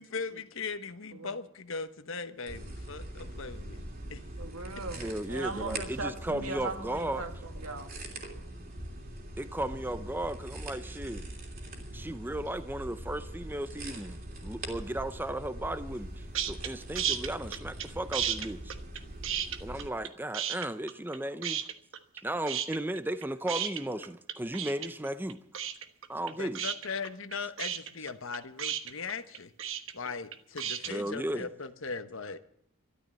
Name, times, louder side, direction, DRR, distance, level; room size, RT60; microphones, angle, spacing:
voice 1, 0.0-3.8 4.1-4.2 26.4-29.5 29.9-32.4, left 4 dB, 65° left, 1.1 m, -39 dB
sound 1, 2.5-19.9, right 1 dB, 45° right, 3.1 m, -42 dB
voice 2, 4.4-8.0, right 3 dB, 80° right, 2.1 m, -39 dB
voice 3, 5.0-7.2 9.4-11.3 11.9-14.2 14.4-18.7 19.6-21.6 22.2-25.4 26.1-26.7 30.9-31.5, right 1 dB, 10° right, 0.6 m, -35 dB
sound 2, 16.3-16.7 17.0-17.9 18.1-20.1 20.3-21.2 21.4-22.2 22.5-30.9, right 9 dB, 60° right, 1.2 m, -33 dB
13.5 x 12.0 x 7.7 m
head